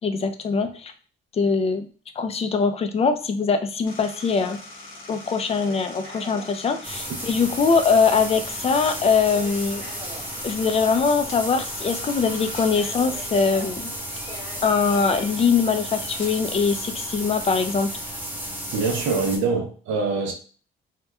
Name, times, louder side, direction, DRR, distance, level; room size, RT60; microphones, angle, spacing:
voice 1, 0.0-0.9 1.3-1.9 2.2-4.6 5.1-9.8 10.4-13.9 14.6-17.9, left 5 dB, 30° left, 8 dB, 0.3 m, -22 dB
sound 1, 3.8-16.3, left 2 dB, 75° left, 0.9 m, -43 dB
sound 2, 5.7-6.7 8.6-10.5 11.7-11.8 12.1-12.5 12.8-13.8 14.1-15.3 17.6-17.9, right 1 dB, 30° right, 1.0 m, -43 dB
sound 3, 6.8-19.4, equal, 10° right, 0.7 m, -33 dB
voice 2, 18.7-20.3, right 4 dB, 75° right, 2 dB, 0.5 m, -24 dB
2.9 x 2.1 x 2.2 m, 0.40 s
cardioid pair, 90°, 20 cm